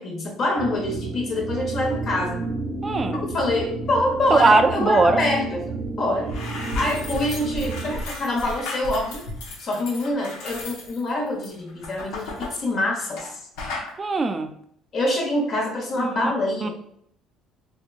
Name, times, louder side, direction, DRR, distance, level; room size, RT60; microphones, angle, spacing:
voice 1, 0.0-2.4 3.1-5.7 6.0-6.3 6.7-9.2 9.6-13.3 14.9-16.7, left 1 dB, 50° left, 0 dB, 1.1 m, -25 dB
sound 1, 0.6-8.0, right 3 dB, 85° right, 0.7 m, -31 dB
voice 2, 2.8-3.2 4.3-5.2 14.0-14.5 16.0-16.3 16.6-16.7, right 3 dB, 30° right, 8 dB, 0.4 m, -20 dB
sound 2, 5.8-5.9 6.2-13.3 13.6-13.9, left 2 dB, 85° left, 0.9 m, -34 dB
3.6 x 2.7 x 2.4 m, 0.70 s
supercardioid pair, 85°, 0 cm